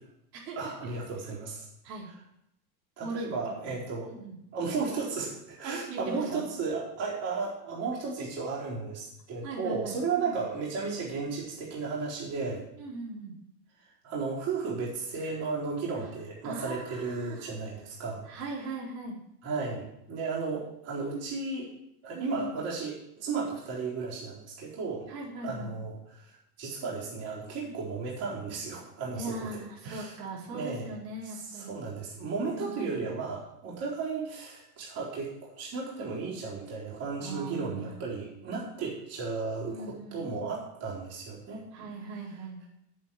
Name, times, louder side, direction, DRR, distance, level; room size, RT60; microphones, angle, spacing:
voice 1, 0.6-1.7 3.0-4.1 4.5-12.6 14.0-18.2 19.4-21.7 22.0-25.1 25.4-30.1 30.5-30.9 31.2-41.7, right 4 dB, 30° right, -6 dB, 4.1 m, -34 dB
voice 2, 4.0-4.4 5.6-6.4 9.4-10.4 12.8-13.3 16.4-17.5 18.2-19.2 22.1-22.5 25.1-25.7 27.6-27.7 29.1-31.8 32.5-33.0 37.2-37.9 39.7-40.5 41.7-42.6, right 2 dB, 85° right, -4 dB, 4.3 m, -39 dB
8.6 x 7.8 x 6.9 m, 0.79 s
supercardioid pair, 160°, 48 cm